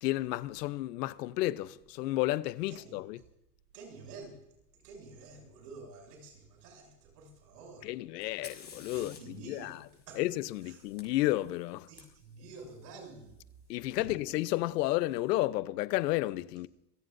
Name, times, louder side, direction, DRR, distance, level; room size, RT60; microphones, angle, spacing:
voice 1, 0.0-3.2 7.8-9.8 10.2-11.9 13.7-16.7, left 17 dB, 85° left, 1.0 m, -32 dB
voice 2, 3.7-4.4 4.7-7.9 8.9-9.8 10.1-10.2 10.6-10.8 11.9-13.4 14.0-14.2, right 3 dB, 85° right, 7.2 m, -49 dB
Fire, 8.2-12.0 13.9-14.0 14.8-15.2, left 5 dB, 20° left, 5.4 m, -53 dB
26.5 x 16.5 x 2.7 m
supercardioid pair, 125°, 47 cm